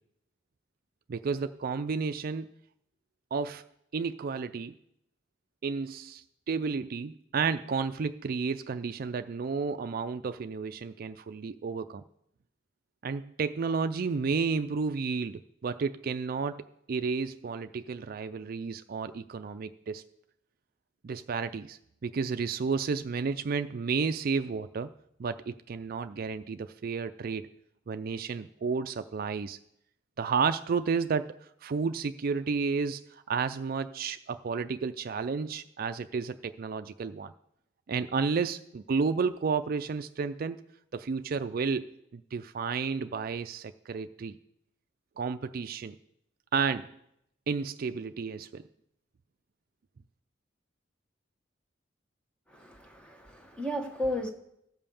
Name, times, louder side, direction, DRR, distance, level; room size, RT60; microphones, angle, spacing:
voice 1, 1.1-2.5 3.3-3.7 3.9-4.7 5.6-12.0 13.0-20.0 21.0-24.9 25.2-27.5 27.9-29.6 30.2-31.3 31.6-37.3 37.9-40.6 40.9-44.4 45.2-46.0 46.5-46.9 47.5-48.6, right 5 dB, 50° right, 10 dB, 0.4 m, -32 dB
voice 2, 52.5-54.3, equal, 5° left, 3 dB, 1.4 m, -34 dB
15.0 x 5.5 x 7.0 m, 0.76 s
head